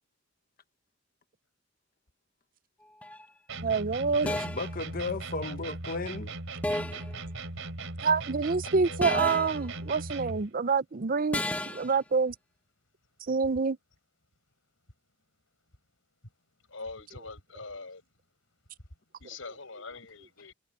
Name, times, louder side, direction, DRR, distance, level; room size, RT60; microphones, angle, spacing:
sound 1, 3.0-3.3 4.3-4.7 6.6-7.1 9.0-9.6 11.3-11.9, left 1 dB, 10° left, 1.0 m, -32 dB
sound 2, 3.5-10.5, right 2 dB, 85° right, 3.6 m, -38 dB
voice 1, 3.6-4.3 8.0-12.3 13.3-13.8, right 4 dB, 45° right, 0.6 m, -27 dB
voice 2, 4.2-6.3, left 3 dB, 45° left, 1.3 m, -35 dB
voice 3, 8.6-9.0 16.7-18.1 19.2-20.5, left 3 dB, 75° left, 6.0 m, -44 dB
head